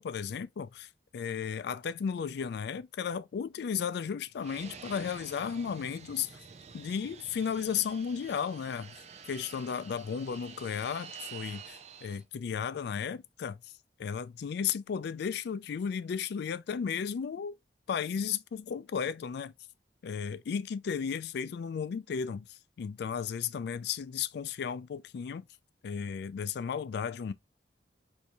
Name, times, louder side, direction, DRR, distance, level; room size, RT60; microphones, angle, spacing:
voice 1, 0.0-6.4 6.7-9.0 9.3-13.7 14.0-17.6 17.9-19.5 20.0-25.4 25.8-27.3, left 7 dB, 65° left, 0.3 m, -34 dB
Fixed-wing aircraft airplane, 4.4-12.2, right 6 dB, 40° right, 0.5 m, -49 dB
4.6 x 2.6 x 2.6 m
head